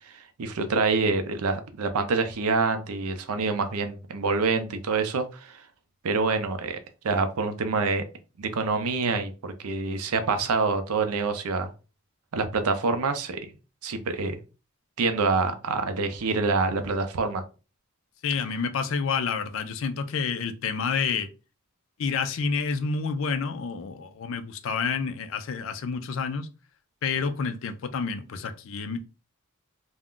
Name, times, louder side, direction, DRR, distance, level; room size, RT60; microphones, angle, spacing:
voice 1, 0.1-5.6 6.0-6.8 7.0-8.0 8.4-11.7 12.3-13.4 13.8-14.4 15.0-17.4, right 4 dB, 90° right, 0.5 m, -26 dB
voice 2, 18.2-21.3 22.0-26.5 27.0-29.0, left 5 dB, 65° left, 0.4 m, -29 dB
2.4 x 2.1 x 3.6 m
head